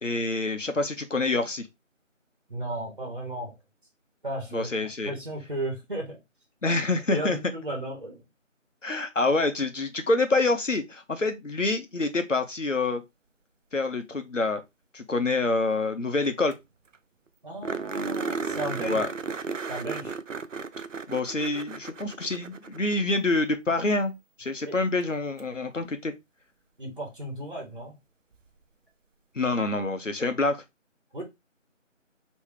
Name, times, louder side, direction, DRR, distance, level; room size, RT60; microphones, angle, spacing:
voice 1, 0.0-1.7 4.5-5.1 6.6-7.4 8.8-13.0 13.7-14.6 14.9-16.5 18.8-19.1 21.1-24.1 24.4-26.1 29.3-30.6, left 3 dB, 70° left, 1.0 m, -26 dB
voice 2, 2.5-3.5 4.2-4.7 5.0-6.2 7.1-8.2 17.4-19.0 19.7-20.1 24.7-24.8 26.8-27.9 31.1-31.2, right 1 dB, 40° right, 1.4 m, -34 dB
sound 1, 16.2-16.3 16.5-16.6 16.9-17.0 17.6-23.1 25.4-25.5 28.3-28.4, right 4 dB, 75° right, 0.6 m, -34 dB
3.5 x 3.2 x 3.2 m
figure-of-eight pair, 170°, 39 cm